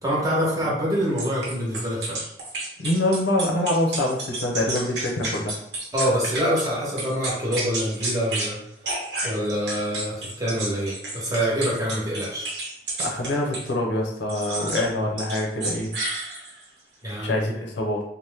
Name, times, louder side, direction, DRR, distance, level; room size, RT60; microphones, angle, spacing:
voice 1, 0.0-2.2 5.9-8.6 9.2-12.5 17.0-17.4, equal, 20° right, -6 dB, 0.9 m, -25 dB
sound 1, 1.2-6.7 7.0-8.5 8.8-13.7 14.3-14.9 15.2-16.6, right 2 dB, 75° right, 0.9 m, -31 dB
voice 2, 2.8-5.5 13.0-15.9 17.2-18.0, left 1 dB, 85° left, 0 dB, 0.6 m, -25 dB
2.8 x 2.1 x 3.3 m, 0.76 s
head